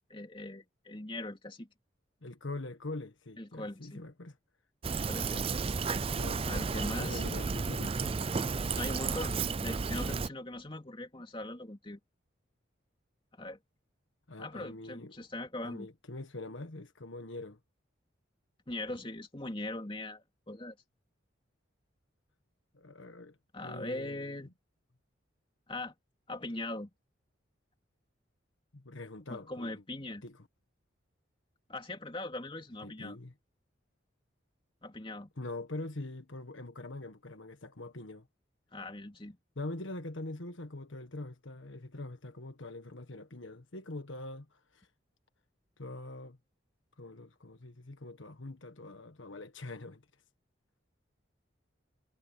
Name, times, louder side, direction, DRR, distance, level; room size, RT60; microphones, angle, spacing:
voice 1, 0.1-1.7 3.4-4.0 5.0-5.4 6.5-7.2 8.8-12.0 13.3-13.6 14.4-15.9 18.7-20.8 23.5-24.5 25.7-25.9 26.3-26.9 29.3-30.2 31.7-33.2 34.8-35.3 38.7-39.4, left 2 dB, 25° left, 2.8 m, -40 dB
voice 2, 2.2-4.4 6.1-6.4 7.0-8.2 14.3-15.2 15.6-17.6 22.7-24.5 28.7-29.8 30.2-30.4 32.8-33.3 35.4-38.3 39.5-44.9 45.8-46.4 47.0-50.0, left 2 dB, 80° left, 1.5 m, -43 dB
Fill (with liquid), 4.8-10.3, right 4 dB, 30° right, 0.4 m, -33 dB
head